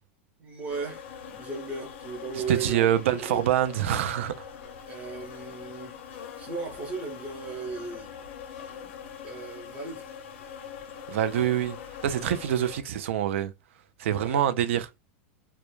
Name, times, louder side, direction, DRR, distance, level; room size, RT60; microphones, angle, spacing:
voice 1, 0.4-1.0 1.3-3.5 4.9-8.1 9.2-10.1 14.1-14.4, right 4 dB, 20° right, 0.7 m, -36 dB
sound 1, 0.7-12.8, left 7 dB, 65° left, 0.5 m, -43 dB
voice 2, 2.5-4.3 11.1-11.8 12.0-13.5 14.0-14.9, right 11 dB, 75° right, 0.3 m, -25 dB
2.1 x 2.0 x 2.9 m
supercardioid pair, 150°, 7 cm